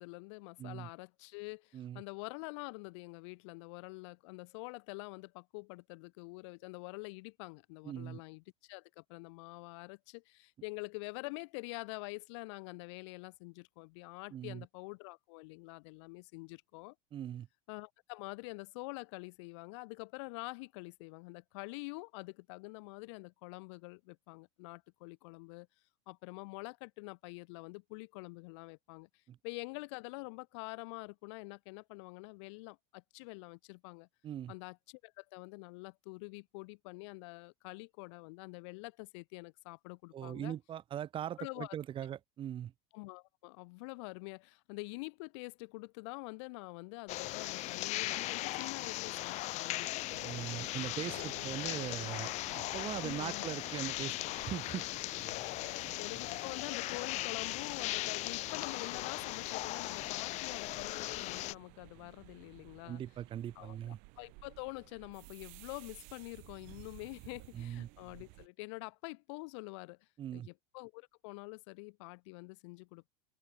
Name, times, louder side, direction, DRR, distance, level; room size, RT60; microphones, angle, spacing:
voice 1, 0.0-16.9 17.7-25.7 26.1-29.1 29.4-34.1 34.5-40.5 41.4-41.7 42.9-49.9 51.1-51.4 53.0-53.4 55.6-63.0 63.5-70.0 70.3-73.1, left 28 dB, 70° left, 3.0 m, -46 dB
voice 2, 0.6-0.9 1.7-2.0 7.8-8.2 14.3-14.6 17.1-17.5 29.3-29.4 34.2-34.5 40.1-42.7 50.2-52.3 52.7-54.9 62.8-64.0 67.5-67.9 70.2-70.5, right 10 dB, 35° right, 4.0 m, -40 dB
sound 1, 47.1-61.5, left 19 dB, 50° left, 1.4 m, -38 dB
sound 2, 50.1-68.5, right 35 dB, 65° right, 6.4 m, -56 dB
supercardioid pair, 130°, 15 cm